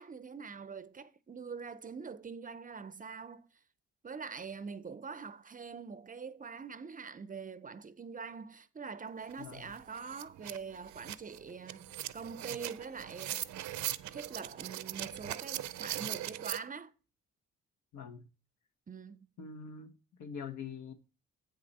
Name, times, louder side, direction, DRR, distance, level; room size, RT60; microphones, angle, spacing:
voice 1, 0.0-3.5 4.0-13.6 14.0-16.9 18.9-19.3, right 5 dB, 25° right, 0.5 m, -44 dB
sound 1, 9.3-9.4 9.7-16.6, right 13 dB, 70° right, 0.6 m, -40 dB
voice 2, 9.4-9.7 17.9-18.2 19.4-19.9 20.2-20.9, left 6 dB, 70° left, 1.2 m, -44 dB
8.2 x 6.5 x 4.1 m
cardioid pair, 90°, 30 cm